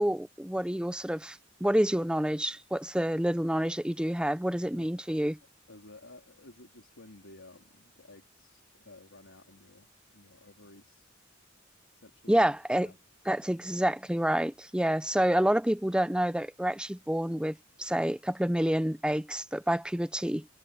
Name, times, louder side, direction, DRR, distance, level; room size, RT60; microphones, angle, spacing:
voice 1, 0.0-5.4 12.3-12.9 13.3-20.4, right 1 dB, 5° right, 0.7 m, -28 dB
voice 2, 4.5-4.9 5.7-11.1 12.0-12.4 12.7-13.0, left 2 dB, 80° left, 3.5 m, -54 dB
head